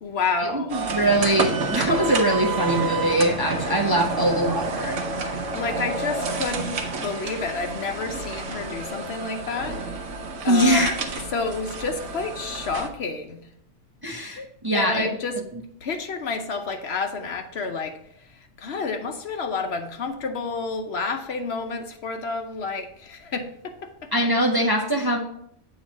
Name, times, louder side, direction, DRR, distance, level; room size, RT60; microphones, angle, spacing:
voice 1, 0.0-0.8 5.5-10.0 10.4-10.9 11.3-13.4 14.4-14.5 14.7-15.4 15.8-18.0 18.6-24.1, left 4 dB, 60° left, 6 dB, 1.0 m, -29 dB
voice 2, 0.5-5.0 10.5-11.0 14.0-15.1 24.1-25.2, right 1 dB, 25° right, 1 dB, 0.6 m, -22 dB
sound 1, 0.7-12.9, right 3 dB, 80° right, 1.2 m, -29 dB
8.4 x 3.1 x 6.1 m, 0.68 s
omnidirectional pair, 1.2 m